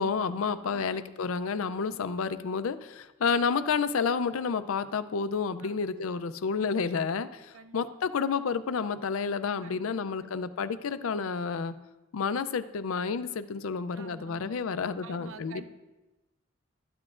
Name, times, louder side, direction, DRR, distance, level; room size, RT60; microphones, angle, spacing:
voice 1, 0.0-11.8 12.1-15.6, left 5 dB, 85° left, 13 dB, 0.5 m, -30 dB
voice 2, 0.6-0.9 5.6-6.0 7.5-7.8 9.6-10.3 13.9-14.6 15.0-15.6, right 4 dB, 75° right, 9 dB, 0.7 m, -49 dB
13.5 x 9.8 x 2.5 m, 1.1 s
head